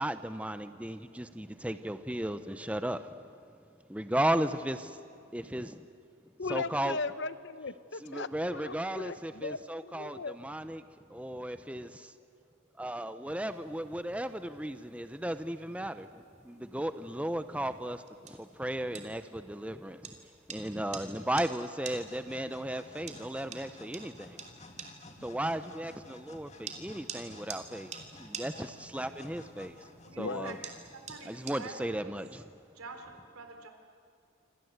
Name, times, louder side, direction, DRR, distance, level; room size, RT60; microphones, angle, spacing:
voice 1, 0.0-3.1 3.9-5.0 5.3-5.9 6.5-7.0 8.0-10.8 11.1-12.1 12.8-16.1 16.4-20.2 20.5-24.4 25.2-29.9 30.2-30.6 31.3-32.4, right 1 dB, 5° right, 10 dB, 0.7 m, -35 dB
voice 2, 6.4-10.3 30.2-30.6, left 4 dB, 55° left, 14 dB, 0.8 m, -38 dB
sound 1, 13.3-31.9, right 6 dB, 30° right, 2.9 m, -50 dB
sound 2, 21.9-31.2, left 2 dB, 35° left, 2.1 m, -53 dB
voice 3, 30.0-30.5 30.9-32.1 32.7-33.7, right 4 dB, 85° right, 5 dB, 3.9 m, -47 dB
27.0 x 26.5 x 8.1 m, 2.4 s
head